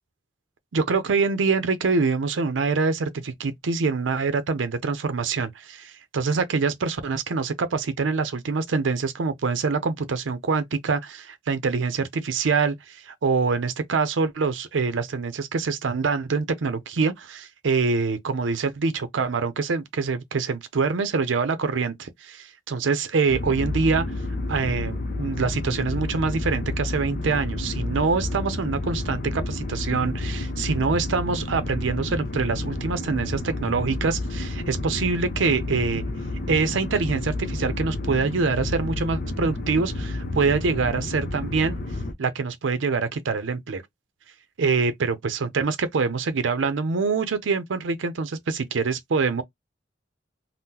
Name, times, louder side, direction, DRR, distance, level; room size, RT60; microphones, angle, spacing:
voice 1, 0.7-24.1 24.5-36.0 36.5-41.8 42.2-43.8 44.6-49.4, right 4 dB, 90° right, 0.5 m, -25 dB
sound 1, 23.3-42.1, left 2 dB, 50° left, 0.6 m, -30 dB
3.6 x 2.0 x 2.8 m
head